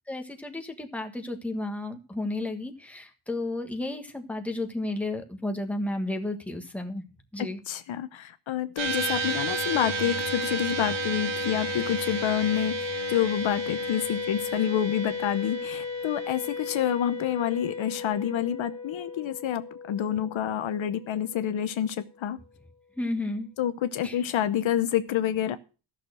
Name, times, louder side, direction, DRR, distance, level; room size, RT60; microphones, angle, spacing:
voice 1, 0.1-7.0 7.3-7.6 23.0-23.5 24.0-24.2, left 2 dB, 5° left, 4 dB, 1.4 m, -32 dB
voice 2, 7.7-22.4 23.6-25.6, left 10 dB, 70° left, 11 dB, 0.9 m, -28 dB
sound 1, 8.8-21.3, equal, 60° right, 2.1 m, -32 dB
14.0 x 6.6 x 6.3 m, 0.34 s
wide cardioid pair, 165°, 48 cm